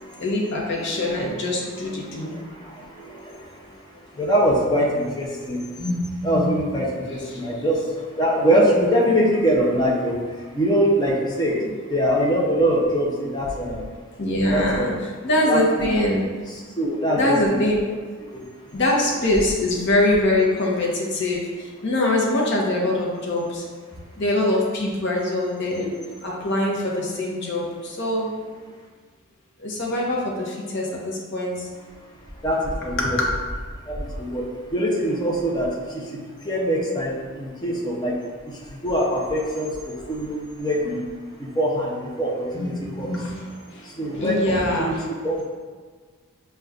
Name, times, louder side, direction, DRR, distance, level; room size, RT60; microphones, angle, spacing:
voice 1, 0.2-2.3 7.3-7.4 14.2-14.9 15.2-16.3 17.1-17.8 18.7-21.4 21.8-23.6 24.2-28.3 29.6-31.6 33.0-33.3 43.1-43.4 44.1-45.0, left 1 dB, 55° left, -2 dB, 0.7 m, -23 dB
voice 2, 1.8-3.5 4.1-13.9 14.3-15.0 15.5-15.9 16.8-17.4 18.2-18.4 32.4-33.2 33.9-34.4 34.7-38.2 38.5-41.0 41.4-43.4 43.8-45.4, equal, 20° left, -4 dB, 0.5 m, -23 dB
6.5 x 2.2 x 2.4 m, 1.5 s
head